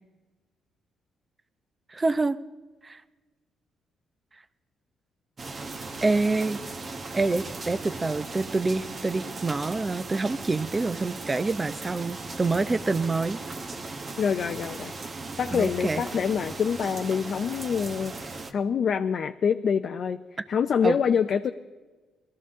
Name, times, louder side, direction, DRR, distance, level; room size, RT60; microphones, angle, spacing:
voice 1, 1.9-2.4 2.8-3.0 6.0-6.6 7.1-13.4 15.5-16.0 20.4-20.5 20.8-21.0, right 3 dB, 25° right, 13 dB, 0.7 m, -26 dB
sound 1, 5.4-18.5, right 3 dB, 40° right, 1.4 m, -38 dB
voice 2, 14.2-14.9 15.4-20.2 20.5-21.5, left 7 dB, 55° left, 6 dB, 0.6 m, -26 dB
20.5 x 13.5 x 3.7 m, 1.3 s
cardioid pair, 90°, 0 cm